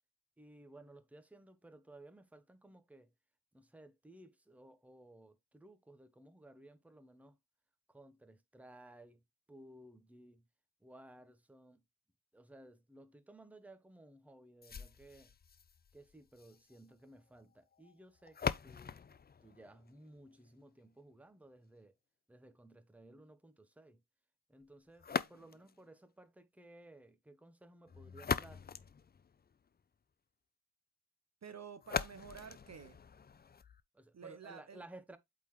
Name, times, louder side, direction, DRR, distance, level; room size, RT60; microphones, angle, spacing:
voice 1, 0.4-3.1 3.5-7.4 7.9-9.2 9.5-10.4 10.8-11.8 12.3-15.3 15.9-19.0 19.4-22.0 22.3-24.0 24.5-28.6 33.9-35.2, right 1 dB, 5° right, 0.7 m, -58 dB
sound 1, 14.6-20.6 25.0-25.8 27.9-29.8 31.8-33.8, left 6 dB, 25° left, 0.3 m, -42 dB
voice 2, 31.4-33.0 34.1-34.8, right 6 dB, 45° right, 0.6 m, -50 dB
8.1 x 3.8 x 3.1 m
wide cardioid pair, 105°, 38 cm